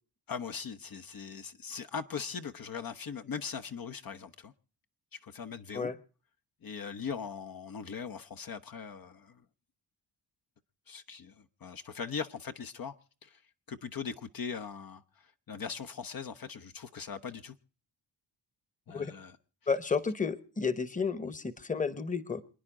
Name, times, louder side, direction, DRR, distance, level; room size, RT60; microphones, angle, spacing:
voice 1, 0.3-4.5 5.1-5.9 6.6-9.4 10.9-12.9 13.2-13.4 13.7-17.5 18.9-19.3, left 6 dB, 55° left, 0.9 m, -40 dB
voice 2, 19.7-22.4, left 5 dB, 20° left, 1.1 m, -32 dB
27.5 x 9.9 x 3.7 m
cardioid pair, 90°, 42 cm